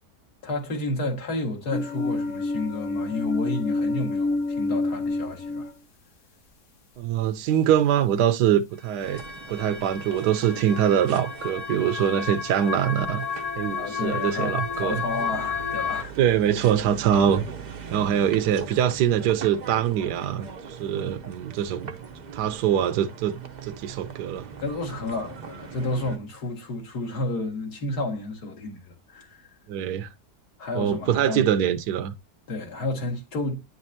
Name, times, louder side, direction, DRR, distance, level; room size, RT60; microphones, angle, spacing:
voice 1, 0.4-5.7 13.8-16.2 24.6-29.5 30.6-31.4 32.5-33.6, left 2 dB, 70° left, 2.3 m, -31 dB
sound 1, 1.7-5.7 9.0-16.0, left 4 dB, 50° left, 1.3 m, -30 dB
voice 2, 7.0-9.2 9.5-13.2 13.6-15.0 16.2-17.5 17.9-21.9 22.3-23.4 23.6-24.5 29.7-30.1 30.8-32.1, right 9 dB, 80° right, 1.2 m, -23 dB
sound 2, 9.0-26.2, right 6 dB, 50° right, 0.5 m, -41 dB
9.6 x 5.2 x 2.6 m
omnidirectional pair, 1.8 m